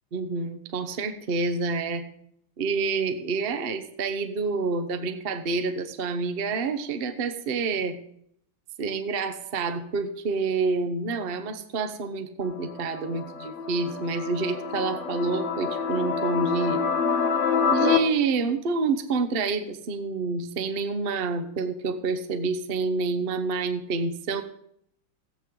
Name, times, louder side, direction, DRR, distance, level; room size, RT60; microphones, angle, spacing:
voice 1, 0.1-2.1 2.6-8.0 8.8-16.8 17.7-24.4, right 4 dB, 45° right, 9 dB, 0.8 m, -28 dB
sound 1, 12.4-18.0, left 5 dB, 50° left, 1.0 m, -27 dB
16.5 x 8.8 x 3.8 m, 0.70 s
omnidirectional pair, 2.2 m